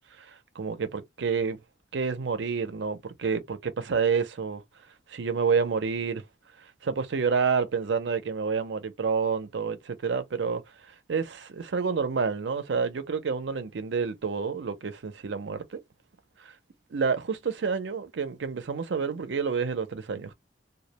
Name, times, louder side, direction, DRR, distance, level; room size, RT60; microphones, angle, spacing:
voice 1, 0.2-1.6 1.9-4.6 5.1-6.2 6.8-10.6 11.1-15.8 16.4-16.5 16.9-20.3, right 5 dB, 80° right, 0.5 m, -29 dB
2.2 x 2.1 x 2.8 m
head